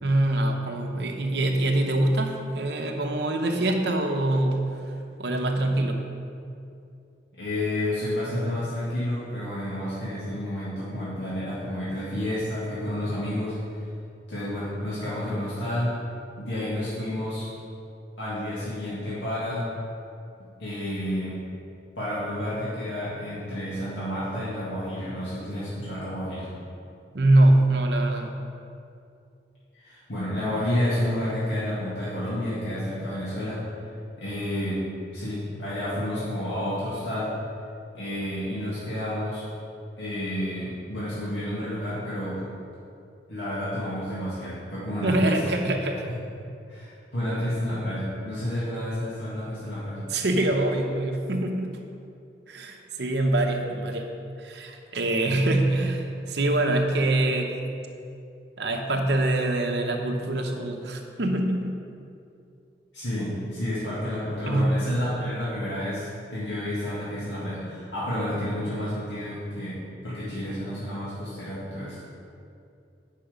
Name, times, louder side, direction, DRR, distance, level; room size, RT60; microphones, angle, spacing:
voice 1, 0.0-4.9 5.2-6.0 27.1-28.3 45.0-46.0 50.1-51.8 52.5-54.1 54.4-57.6 58.6-61.8 64.5-64.7, right 1 dB, 70° right, 3 dB, 0.9 m, -24 dB
voice 2, 7.4-13.6 14.3-16.0 16.4-17.5 18.2-19.7 20.6-21.3 22.0-26.5 29.8-33.6 34.2-34.9 35.1-37.3 37.9-39.5 40.0-42.4 43.3-45.4 46.1-46.2 46.7-50.0 62.9-69.8 70.0-72.0, left 1 dB, 85° left, -10 dB, 2.0 m, -30 dB
8.5 x 5.7 x 5.1 m, 2.6 s
head